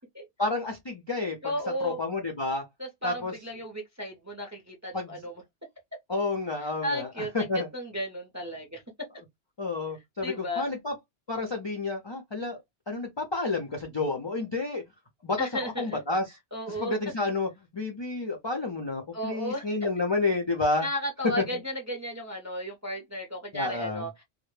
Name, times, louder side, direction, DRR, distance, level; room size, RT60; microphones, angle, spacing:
voice 1, 0.4-1.4 1.8-2.6 3.0-3.3 4.9-5.2 6.1-7.7 9.6-10.9 11.3-12.6 12.9-14.8 15.2-16.2 16.8-20.9 23.5-24.1, left 3 dB, 40° left, 0.3 m, -30 dB
voice 2, 1.4-2.0 2.8-5.4 6.6-7.5 7.7-8.8 10.2-10.7 15.4-16.0 16.5-16.9 19.1-19.7 20.8-24.2, equal, 25° right, 0.4 m, -34 dB
2.1 x 2.0 x 3.1 m
omnidirectional pair, 1.1 m